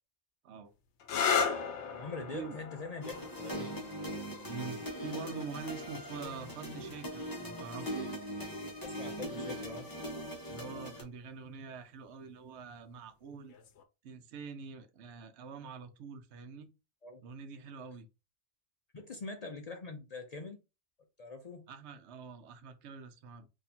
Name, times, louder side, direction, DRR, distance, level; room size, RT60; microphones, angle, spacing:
sound 1, 1.0-8.4 9.4-10.0 13.5-13.8, left 6 dB, 80° left, 0.9 m, -37 dB
voice 1, 1.9-3.9 8.8-9.9 17.0-17.2 18.9-20.6 21.2-21.7, left 3 dB, 50° left, 0.5 m, -43 dB
sound 2, 3.0-11.0, equal, 20° left, 1.0 m, -40 dB
voice 2, 4.4-8.1 10.5-13.5 14.0-16.7 17.2-18.1 21.7-23.5, right 5 dB, 75° right, 0.9 m, -45 dB
4.2 x 2.8 x 2.7 m
omnidirectional pair, 1.2 m